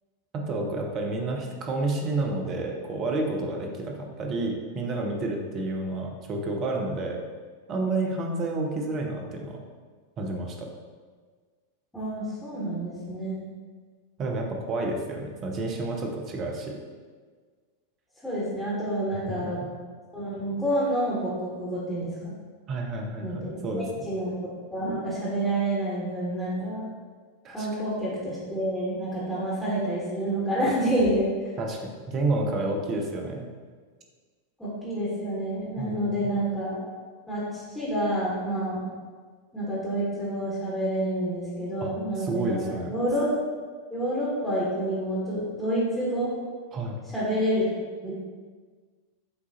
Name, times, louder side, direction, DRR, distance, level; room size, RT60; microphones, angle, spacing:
voice 1, 0.3-7.2 7.7-9.6 10.2-10.7 14.2-16.8 22.7-23.8 27.4-27.7 31.6-33.5 35.8-36.3 41.8-41.9 42.2-42.9 46.7-47.0, right 2 dB, 30° right, 1 dB, 0.6 m, -30 dB
voice 2, 11.9-13.4 18.2-19.6 20.1-22.3 23.2-24.3 24.7-26.9 27.5-31.3 34.6-36.8 37.3-38.8 39.5-43.3 43.9-46.3 47.1-47.7 48.0-48.1, right 1 dB, 5° left, -9 dB, 1.2 m, -28 dB
6.7 x 2.4 x 2.8 m, 1.5 s
figure-of-eight pair, 90°, 0 cm